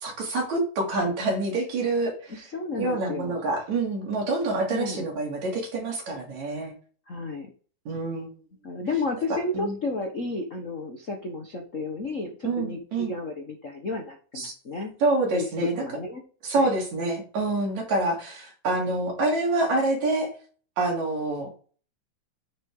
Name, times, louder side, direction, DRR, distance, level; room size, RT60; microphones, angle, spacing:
voice 1, 0.0-2.4 2.8-6.7 7.9-8.3 9.3-9.8 12.4-13.1 14.4-14.5 15.0-15.8 16.4-20.3 20.8-21.5, right 2 dB, 65° right, 0 dB, 4.1 m, -27 dB
voice 2, 2.3-3.4 4.7-5.1 7.1-7.5 8.6-14.9 15.3-16.2 16.6-16.7, left 3 dB, 50° left, 2 dB, 0.9 m, -32 dB
9.1 x 6.6 x 3.8 m, 0.39 s
omnidirectional pair, 3.5 m